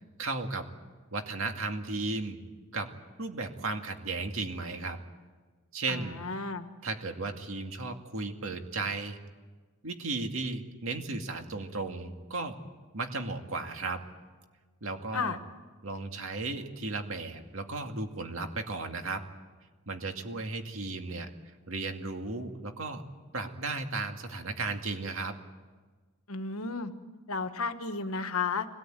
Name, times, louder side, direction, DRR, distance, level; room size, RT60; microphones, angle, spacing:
voice 1, 0.2-0.7 1.1-2.4 2.7-2.9 3.2-5.0 5.7-6.2 6.8-9.2 9.8-12.6 12.9-14.0 14.8-15.4 15.8-19.2 19.9-23.0 23.3-25.4, right 3 dB, 65° right, 5 dB, 2.3 m, -35 dB
voice 2, 5.9-6.7 15.1-15.4 26.3-26.9 27.3-28.7, left 4 dB, 70° left, 9 dB, 1.5 m, -33 dB
25.0 x 18.0 x 9.1 m, 1.4 s
head